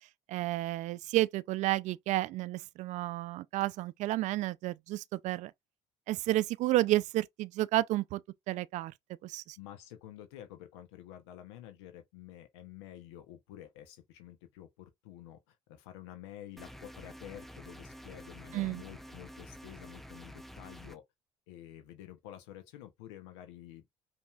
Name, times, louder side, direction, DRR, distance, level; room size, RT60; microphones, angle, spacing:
voice 1, 0.3-5.5 6.1-8.2 8.5-8.9 9.2-9.6 18.5-18.8, right 16 dB, 60° right, 0.4 m, -31 dB
voice 2, 9.6-21.0 21.5-23.9, left 12 dB, 80° left, 0.9 m, -50 dB
sound 1, 16.6-21.0, equal, ahead, 0.6 m, -49 dB
5.3 x 3.0 x 2.4 m
hypercardioid pair, 65°, 14 cm